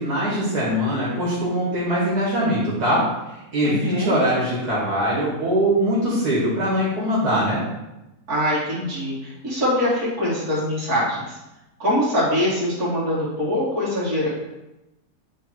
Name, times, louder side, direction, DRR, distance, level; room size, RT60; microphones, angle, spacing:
voice 1, 0.0-3.0 3.5-7.6, equal, 90° right, -8 dB, 2.6 m, -22 dB
voice 2, 3.6-4.1 8.3-11.4 11.8-14.3, left 1 dB, 70° right, -8 dB, 2.9 m, -23 dB
8.9 x 3.3 x 4.6 m, 0.96 s
omnidirectional pair, 1.7 m